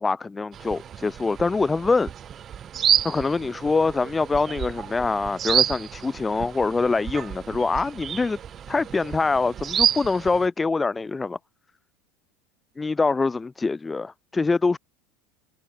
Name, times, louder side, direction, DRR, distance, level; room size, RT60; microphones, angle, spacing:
voice 1, 0.0-2.1 3.0-8.4 8.7-11.4 12.8-14.8, left 3 dB, 15° left, 0.5 m, -24 dB
sound 1, 0.5-10.5, right 9 dB, 35° right, 0.4 m, -29 dB
hypercardioid pair, 80°, 0 cm